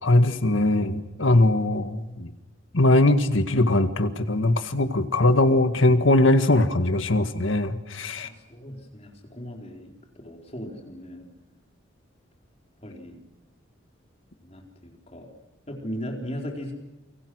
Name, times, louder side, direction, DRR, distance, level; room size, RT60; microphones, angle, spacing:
voice 1, 0.0-2.3 2.7-8.3, left 2 dB, 80° left, 9 dB, 1.9 m, -21 dB
voice 2, 8.1-9.9 10.2-11.3 12.8-13.2 14.4-15.3 15.7-16.7, equal, 30° left, 1 dB, 4.2 m, -37 dB
29.0 x 23.5 x 6.4 m, 1.0 s
head